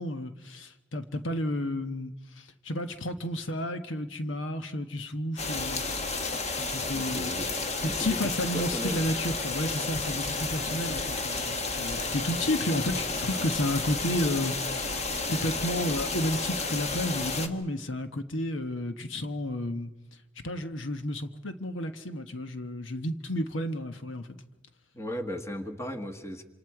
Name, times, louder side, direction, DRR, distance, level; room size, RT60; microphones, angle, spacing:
voice 1, 0.0-5.9 6.2-7.5 7.8-19.9 20.4-24.3, left 1 dB, 85° left, 1.2 m, -32 dB
sound 1, 5.4-17.5, left 3 dB, 35° left, 1.4 m, -32 dB
voice 2, 6.9-7.5 7.8-8.2 8.5-9.0 24.9-26.4, equal, 15° left, 1.6 m, -36 dB
27.0 x 26.5 x 4.8 m
head